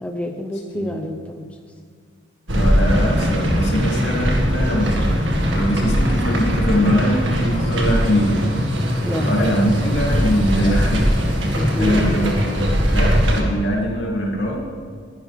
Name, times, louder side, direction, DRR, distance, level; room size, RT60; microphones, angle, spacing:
voice 1, 0.0-1.5 9.0-9.3 11.5-12.3, equal, 5° left, 4 dB, 0.6 m, -27 dB
voice 2, 2.5-8.4 9.2-11.2 11.8-14.6, equal, 60° left, -2 dB, 3.1 m, -22 dB
sound 1, 2.5-13.4, equal, 70° right, 2.0 m, -20 dB
21.0 x 11.0 x 3.6 m, 2.1 s
head